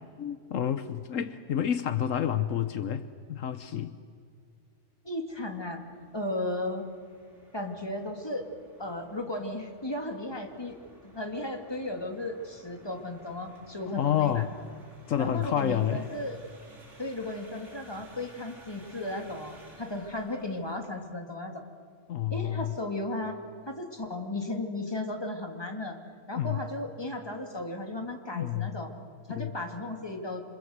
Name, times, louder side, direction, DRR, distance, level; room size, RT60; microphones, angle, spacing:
voice 1, 0.2-3.9 13.9-14.5 15.1-16.1 22.1-22.7 26.3-26.6 28.3-28.7 29.3-29.6, left 10 dB, 75° left, 11 dB, 1.2 m, -29 dB
voice 2, 5.0-5.8 6.1-6.9 7.5-8.4 8.8-10.8 11.0-14.4 15.2-16.4 17.0-21.6 22.3-23.4 23.7-26.0 26.3-30.4, left 1 dB, 20° left, 3 dB, 2.6 m, -35 dB
sound 1, 5.3-20.9, right 1 dB, 60° right, 4.4 m, -56 dB
28.5 x 25.5 x 8.0 m, 2.2 s
omnidirectional pair, 1.4 m